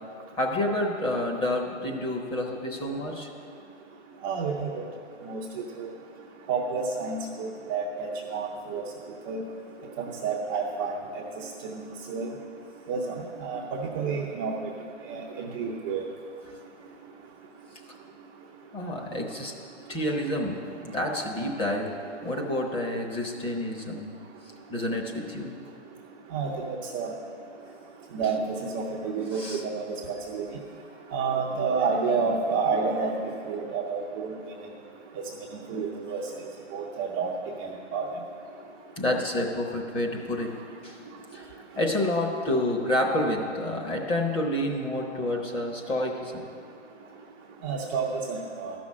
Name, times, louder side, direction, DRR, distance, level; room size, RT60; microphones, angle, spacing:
voice 1, 0.4-3.3 18.7-19.5 19.9-20.6 20.8-21.9 22.2-24.1 24.7-25.5 29.3-29.6 39.0-40.5 40.8-41.0 41.3-41.5 41.8-46.5, left 1 dB, 15° left, 0 dB, 1.0 m, -28 dB
voice 2, 4.2-4.8 5.2-5.4 5.8-5.9 6.5-8.8 9.3-9.4 10.0-11.4 11.7-12.3 12.9-13.2 13.4-14.5 15.1-16.0 26.3-27.1 28.1-28.4 28.7-30.4 31.1-33.2 33.5-34.3 35.7-36.2 36.7-37.3 37.6-38.1 47.6-48.7, right 5 dB, 20° right, -4 dB, 0.5 m, -29 dB
12.5 x 6.2 x 8.5 m, 2.4 s
hypercardioid pair, 145°, 37 cm